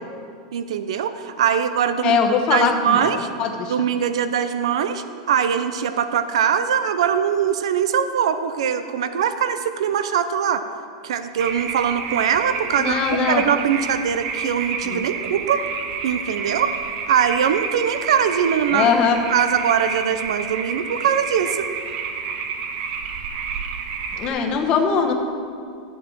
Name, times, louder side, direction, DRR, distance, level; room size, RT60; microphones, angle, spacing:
voice 1, 0.5-2.2 2.5-3.3 3.6-10.6 11.0-13.0 13.3-15.6 16.0-16.7 17.1-18.9 19.3-21.7, right 8 dB, 90° right, 10 dB, 0.6 m, -22 dB
voice 2, 2.0-3.7 12.8-13.4 14.8-15.0 18.7-19.2 24.2-25.1, left 6 dB, 30° left, 3 dB, 1.0 m, -21 dB
sound 1, 11.4-24.3, right 6 dB, 40° right, 0.7 m, -29 dB
13.0 x 8.0 x 4.5 m, 2.3 s
supercardioid pair, 165°, 3 cm